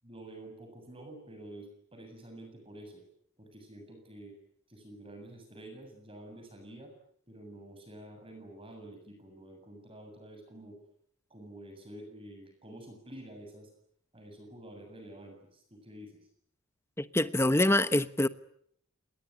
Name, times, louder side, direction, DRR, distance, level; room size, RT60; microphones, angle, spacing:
voice 1, 0.0-3.0 3.4-4.4 4.7-6.9 7.3-10.8 11.3-13.7 14.1-16.2, right 1 dB, 25° right, 7.5 m, -49 dB
voice 2, 17.0-18.3, left 1 dB, 15° left, 1.1 m, -25 dB
27.5 x 21.5 x 9.8 m
head